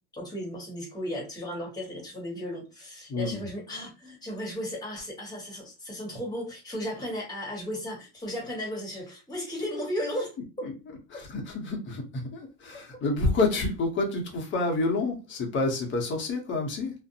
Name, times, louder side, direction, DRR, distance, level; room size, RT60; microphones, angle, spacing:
voice 1, 0.1-10.3 10.6-10.7, equal, 10° left, -2 dB, 1.2 m, -35 dB
voice 2, 11.1-16.9, left 3 dB, 30° left, 3 dB, 0.8 m, -28 dB
2.5 x 2.1 x 2.6 m, 0.31 s
supercardioid pair, 125°, 38 cm